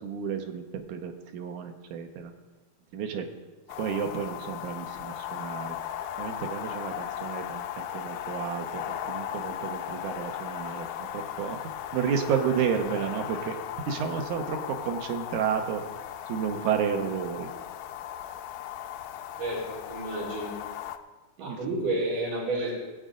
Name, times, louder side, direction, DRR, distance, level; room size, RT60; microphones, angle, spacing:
voice 1, 0.0-2.3 2.9-3.3 3.8-5.8 6.2-10.9 11.1-11.6 11.9-13.5 13.9-15.8 16.3-17.5 21.4-21.6, right 7 dB, 70° right, 4 dB, 1.9 m, -31 dB
sound 1, 3.7-21.0, left 10 dB, 85° left, 2.0 m, -37 dB
voice 2, 19.4-20.5 21.4-22.7, right 2 dB, 55° right, -7 dB, 5.5 m, -30 dB
21.0 x 8.0 x 3.8 m, 1.2 s
omnidirectional pair, 4.5 m